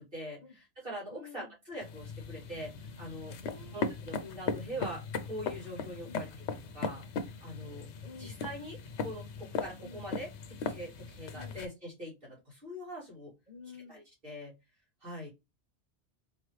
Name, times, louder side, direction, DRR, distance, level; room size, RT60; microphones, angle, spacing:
voice 1, 0.0-3.4 3.7-6.5 6.7-7.0 7.4-7.9 8.2-13.3 13.9-14.6 15.0-15.3, equal, 55° right, -5 dB, 2.6 m, -43 dB
voice 2, 1.1-1.5 3.4-4.0 6.0-6.3 8.0-8.4 9.8-10.0 11.3-11.6 13.5-14.0, left 4 dB, 40° left, 3 dB, 1.3 m, -51 dB
sound 1, 1.8-11.7, left 5 dB, 80° left, 0.9 m, -38 dB
4.0 x 3.1 x 3.1 m, 0.24 s
omnidirectional pair, 1.1 m